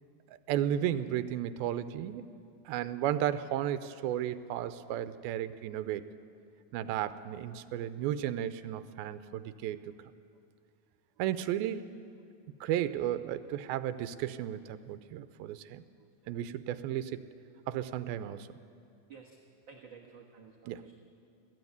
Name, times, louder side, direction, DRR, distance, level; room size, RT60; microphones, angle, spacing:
voice 1, 0.3-2.3 2.7-6.1 6.7-10.0 11.2-11.9 12.6-15.8 16.3-17.3 17.7-18.5 20.7-20.9, right 11 dB, 85° right, 12 dB, 2.5 m, -34 dB
voice 2, 19.7-21.0, right 5 dB, 55° right, -2 dB, 1.3 m, -52 dB
20.5 x 14.5 x 9.5 m, 2.4 s
omnidirectional pair, 4.2 m